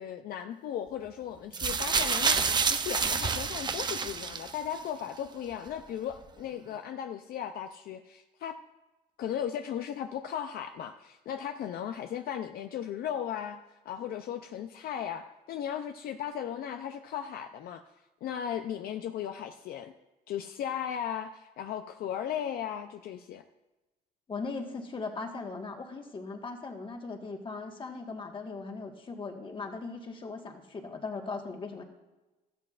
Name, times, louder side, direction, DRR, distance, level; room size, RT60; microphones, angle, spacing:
voice 1, 0.0-8.6 9.2-13.6 13.9-17.8 18.2-19.9 20.3-23.4, left 9 dB, 65° left, 7 dB, 0.5 m, -36 dB
sound 1, 1.5-4.8 5.7-5.8, right 5 dB, 25° right, 0.6 m, -28 dB
voice 2, 24.3-31.8, left 4 dB, 30° left, 3 dB, 1.5 m, -39 dB
13.5 x 12.0 x 2.5 m, 1.1 s
cardioid pair, 110°, 17 cm